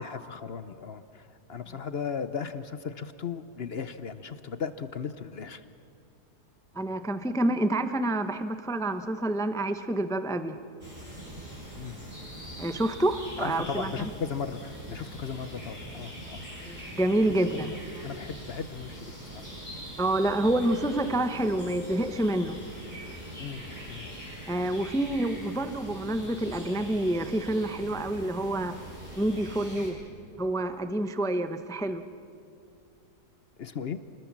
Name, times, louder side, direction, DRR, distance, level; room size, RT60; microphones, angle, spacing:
voice 1, 0.0-5.6 11.7-12.0 13.4-16.4 16.8-16.9 17.5-19.5 23.4-24.1 33.6-34.0, left 6 dB, 50° left, 11 dB, 0.8 m, -37 dB
voice 2, 6.7-10.6 12.6-13.9 16.7-17.7 20.0-22.6 24.5-28.7 29.2-30.0 30.4-32.0, right 1 dB, 5° left, 9 dB, 0.5 m, -28 dB
sound 1, 10.8-29.9, equal, 25° right, 7.3 m, -42 dB
28.0 x 20.5 x 7.4 m, 2.5 s
omnidirectional pair, 1.7 m